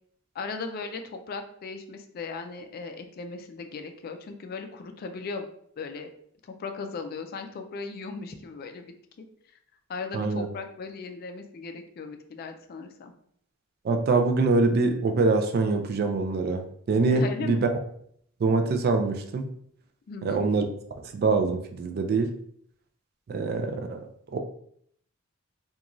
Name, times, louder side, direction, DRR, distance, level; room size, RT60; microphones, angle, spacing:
voice 1, 0.3-5.5 5.8-6.1 6.4-9.2 9.9-13.1 17.1-17.6 20.1-20.5, left 4 dB, 45° left, 6 dB, 0.3 m, -37 dB
voice 2, 10.1-10.5 13.8-17.7 18.4-19.5 20.2-20.7 21.1-22.3 23.3-24.1 24.3-24.4, right 3 dB, 45° right, 6 dB, 0.3 m, -24 dB
2.9 x 2.3 x 2.5 m, 0.66 s
head